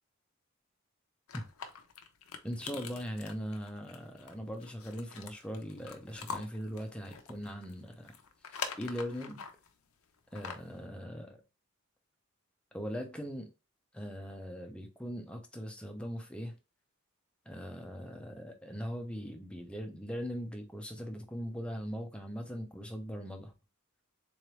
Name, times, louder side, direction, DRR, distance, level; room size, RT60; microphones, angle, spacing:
sound 1, 1.3-9.7 10.2-10.8, left 6 dB, 90° left, 0.6 m, -45 dB
voice 1, 2.4-8.1 8.8-9.4 10.3-11.4 12.7-13.5 13.9-16.5 17.5-23.5, equal, 5° left, 0.6 m, -40 dB
3.9 x 3.2 x 3.1 m
head